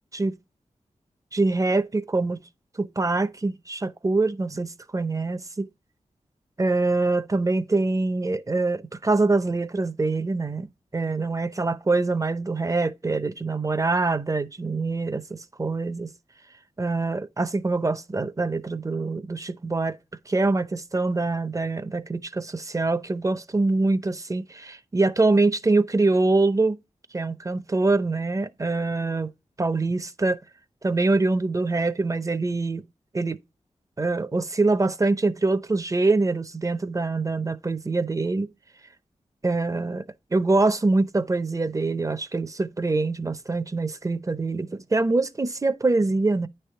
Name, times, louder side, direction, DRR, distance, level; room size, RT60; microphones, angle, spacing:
voice 1, 1.3-2.4 2.8-5.7 6.6-10.7 10.9-16.1 16.8-20.0 20.3-26.8 27.1-29.3 29.6-30.4 30.8-32.9 33.1-33.4 34.0-38.5 39.4-40.0 40.3-46.5, right 3 dB, 25° right, 0.6 m, -24 dB
9.8 x 3.4 x 5.6 m
wide cardioid pair, 80°, 12 cm